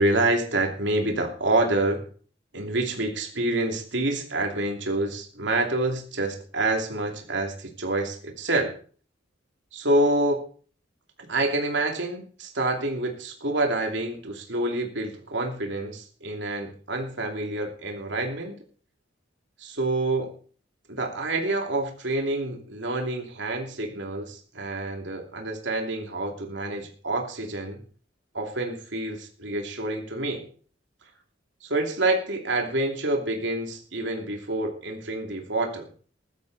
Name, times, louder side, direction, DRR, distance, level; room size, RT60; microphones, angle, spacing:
voice 1, 0.0-2.0 2.5-8.8 9.7-10.4 11.2-18.6 19.6-20.3 20.9-27.8 28.3-30.5 31.6-35.9, right 2 dB, 70° right, 3 dB, 2.8 m, -27 dB
15.5 x 12.0 x 4.1 m, 0.42 s
head